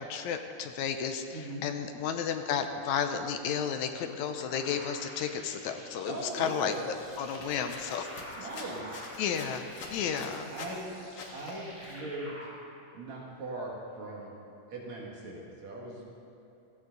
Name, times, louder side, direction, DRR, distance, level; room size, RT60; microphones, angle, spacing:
voice 1, 0.0-6.7 7.2-8.1 8.4-8.5 9.2-10.5, left 7 dB, 75° left, 6 dB, 2.0 m, -32 dB
voice 2, 1.3-1.6 6.1-6.8 8.4-9.1 10.1-10.9 11.3-12.5 12.9-14.3 14.7-16.0, right 2 dB, 65° right, -3 dB, 2.9 m, -40 dB
sound 1, 4.4-12.5, equal, 5° right, 2.8 m, -48 dB
sound 2, 6.9-10.8 11.2-12.0, left 3 dB, 55° left, 1.8 m, -46 dB
16.0 x 14.5 x 4.0 m, 2.8 s
omnidirectional pair, 3.6 m